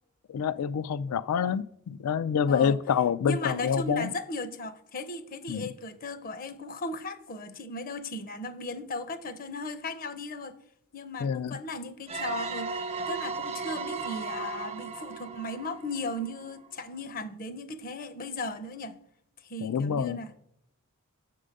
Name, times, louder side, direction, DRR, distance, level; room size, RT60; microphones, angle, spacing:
voice 1, 0.3-4.1 5.5-5.7 11.2-11.6 19.6-20.2, left 7 dB, 85° left, 0.3 m, -27 dB
voice 2, 2.5-2.8 3.2-10.5 10.9-19.0 19.5-20.3, left 2 dB, 40° left, 0.6 m, -36 dB
sound 1, 12.1-16.7, right 4 dB, 30° right, 0.5 m, -36 dB
7.5 x 3.8 x 6.5 m
head